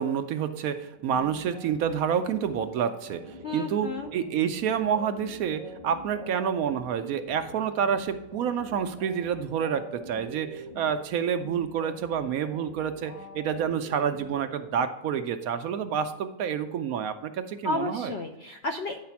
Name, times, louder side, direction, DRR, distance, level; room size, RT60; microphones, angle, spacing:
voice 1, 0.0-18.1, right 8 dB, 70° right, 9 dB, 1.0 m, -28 dB
sound 1, 1.0-15.3, right 1 dB, 25° left, 1.7 m, -46 dB
voice 2, 3.4-4.1 17.6-19.0, left 2 dB, 65° left, 4 dB, 0.6 m, -32 dB
9.5 x 4.1 x 5.8 m, 0.93 s
omnidirectional pair, 1.7 m